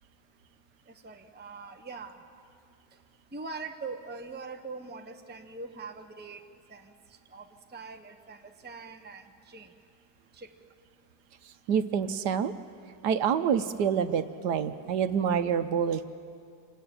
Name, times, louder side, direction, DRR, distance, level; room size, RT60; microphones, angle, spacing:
voice 1, 0.9-2.4 3.3-6.4 6.7-6.9 7.3-9.7 10.3-10.5, right 4 dB, 10° right, 5 dB, 0.8 m, -43 dB
voice 2, 11.7-12.5 13.0-16.0, right 7 dB, 75° right, 10 dB, 1.4 m, -27 dB
26.5 x 18.5 x 8.7 m, 2.3 s
omnidirectional pair, 1.9 m